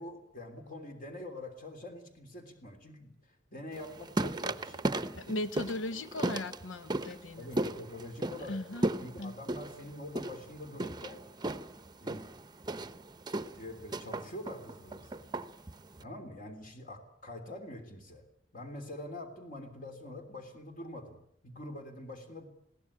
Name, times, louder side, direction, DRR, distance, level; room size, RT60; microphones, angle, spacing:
voice 1, 0.0-4.9 7.4-8.6 9.0-11.2 12.0-12.2 13.5-15.3 16.0-18.2 18.5-22.5, left 1 dB, 45° left, 3.3 m, -45 dB
sound 1, 3.7-16.0, right 2 dB, 25° right, 0.8 m, -36 dB
voice 2, 5.2-7.5 8.5-8.9 9.2-9.3, left 2 dB, 85° left, 0.8 m, -37 dB
22.0 x 16.5 x 8.7 m
head